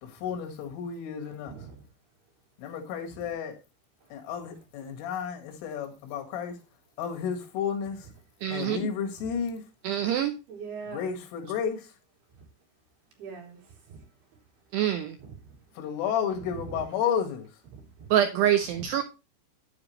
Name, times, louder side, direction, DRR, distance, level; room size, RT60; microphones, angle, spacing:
voice 1, 0.0-1.6 2.6-3.6 4.1-6.6 7.0-8.1 8.5-9.6 10.8-11.9 15.8-17.5, left 7 dB, 85° left, 4.5 m, -32 dB
voice 2, 8.4-8.8 9.8-10.3 14.7-15.2 18.1-19.0, right 11 dB, 85° right, 2.4 m, -25 dB
voice 3, 10.5-11.2 13.2-13.6 13.9-14.0 15.2-15.3 17.7-18.1 18.8-18.9, right 6 dB, 55° right, 5.1 m, -41 dB
10.0 x 9.7 x 3.2 m
omnidirectional pair, 5.6 m